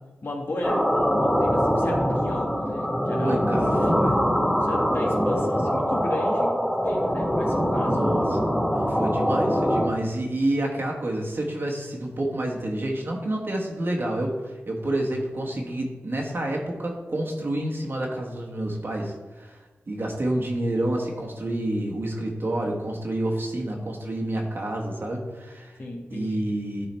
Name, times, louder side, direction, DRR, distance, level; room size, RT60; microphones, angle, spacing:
voice 1, 0.2-4.0 4.6-8.1 25.8-26.4, left 1 dB, 50° left, 0 dB, 1.6 m, -33 dB
sound 1, 0.6-9.9, equal, 5° left, 1.0 m, -23 dB
voice 2, 3.2-4.2 7.9-19.6 19.9-25.7 26.1-26.9, right 1 dB, 50° right, -1 dB, 1.6 m, -29 dB
10.5 x 3.8 x 4.4 m, 1.3 s
cardioid pair, 55°, 5 cm